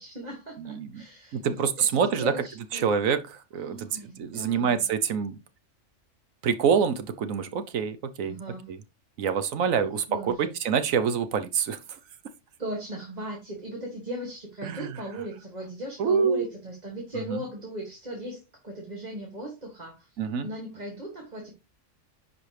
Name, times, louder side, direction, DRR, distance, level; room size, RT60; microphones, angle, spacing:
voice 1, 0.0-2.9 3.5-4.9 8.2-8.7 9.8-10.6 12.6-20.1 20.4-21.5, equal, 30° right, 1.8 m, -38 dB
voice 2, 0.6-1.0 1.3-2.3 2.7-3.2 3.5-5.4 6.4-8.3 8.7-8.8 9.2-11.8 14.6-14.9 16.0-16.5 17.3-17.4 20.2-20.5, right 6 dB, 85° right, 1.3 m, -26 dB
10.5 x 4.7 x 3.3 m
omnidirectional pair, 1.4 m